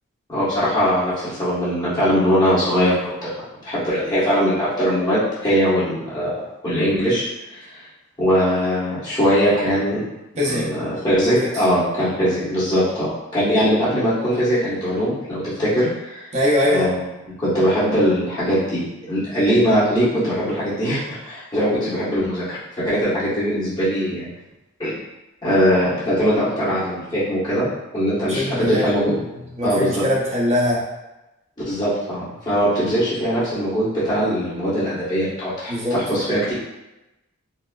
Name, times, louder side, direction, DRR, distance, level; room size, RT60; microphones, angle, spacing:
voice 1, 0.3-3.3 3.6-6.3 6.6-7.2 7.5-7.8 8.2-10.0 10.5-16.2 16.7-17.1 17.4-24.3 24.8-24.9 25.4-27.7 27.9-29.1 29.6-30.0 31.6-36.5, equal, 20° left, -12 dB, 1.3 m, -21 dB
voice 2, 10.4-10.7 11.3-11.5 16.3-16.9 28.3-28.9 29.6-30.8 35.7-36.0, left 1 dB, 30° right, -5 dB, 0.7 m, -21 dB
4.1 x 2.0 x 2.4 m, 0.97 s
head